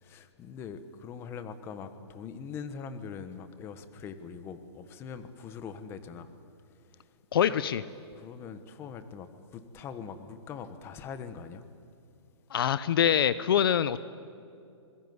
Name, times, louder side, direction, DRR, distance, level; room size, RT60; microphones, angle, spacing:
voice 1, 0.0-6.3 7.5-7.7 8.1-11.6, left 6 dB, 15° left, 11 dB, 1.2 m, -42 dB
voice 2, 7.3-7.8 12.5-14.0, left 9 dB, 50° left, 16 dB, 0.8 m, -24 dB
27.0 x 22.0 x 9.6 m, 2.5 s
hypercardioid pair, 165°, 15 cm